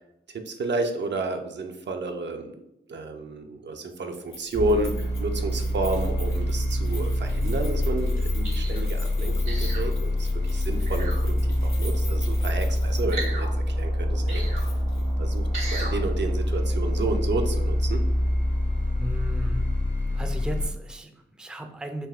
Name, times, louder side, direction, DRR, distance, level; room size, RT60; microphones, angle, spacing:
voice 1, 0.3-2.5 2.9-11.4 11.6-14.4 15.2-18.1, right 2 dB, 60° right, 5 dB, 0.5 m, -31 dB
Keys jangling, 4.3-13.5 13.8-13.9 14.5-15.1 15.4-15.5, left 2 dB, 85° left, 0.9 m, -45 dB
sound 1, 4.5-20.7, left 1 dB, 60° left, 1.0 m, -25 dB
sound 2, 8.4-8.8 9.5-9.9 10.8-11.2 13.1-13.5 14.3-14.6 15.5-15.9 16.5-16.6, right 3 dB, 90° right, 1.2 m, -35 dB
voice 2, 19.0-19.7 20.1-22.1, equal, 5° right, 5 dB, 0.4 m, -35 dB
3.4 x 2.7 x 2.3 m, 0.84 s
cardioid pair, 50°, 20 cm